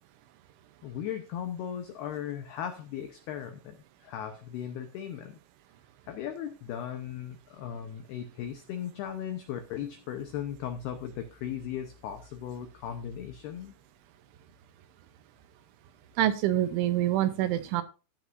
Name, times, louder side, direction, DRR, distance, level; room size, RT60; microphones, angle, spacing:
voice 1, 0.8-5.4 6.0-13.7, left 9 dB, 85° left, 7 dB, 2.3 m, -37 dB
voice 2, 16.2-17.8, right 13 dB, 80° right, 11 dB, 2.9 m, -26 dB
15.5 x 8.9 x 2.6 m, 0.31 s
omnidirectional pair, 5.9 m